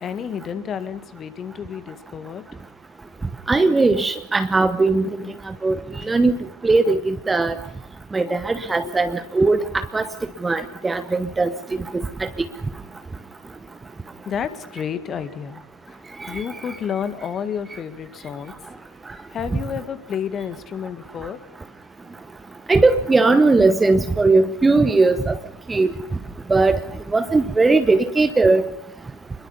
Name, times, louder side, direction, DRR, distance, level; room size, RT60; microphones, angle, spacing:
voice 1, 0.0-2.4 5.2-5.3 6.0-6.2 8.8-9.0 14.3-18.5 19.3-21.4, left 8 dB, 25° left, 11 dB, 1.9 m, -31 dB
voice 2, 3.5-5.1 5.5-6.4 6.6-7.6 8.1-10.1 10.4-11.5 12.2-12.3 16.2-16.4 22.7-25.4 25.7-25.9 26.5-26.8 27.1-28.6, right 3 dB, 10° right, 11 dB, 1.0 m, -18 dB
27.5 x 22.0 x 5.5 m, 0.77 s
figure-of-eight pair, 90°, 0 cm